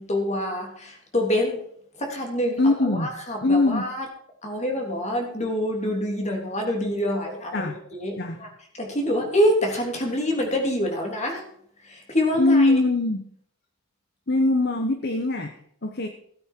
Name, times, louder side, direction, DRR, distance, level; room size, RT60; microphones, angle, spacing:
voice 1, 0.0-1.6 2.0-4.1 4.4-8.5 8.8-11.4 11.9-12.7, equal, 30° left, 1 dB, 3.3 m, -26 dB
voice 2, 2.6-3.1 3.4-3.9 7.5-7.8 8.2-8.5 12.3-13.2 14.3-16.1, left 2 dB, 45° left, 6 dB, 1.0 m, -22 dB
17.0 x 8.7 x 4.6 m, 0.65 s
head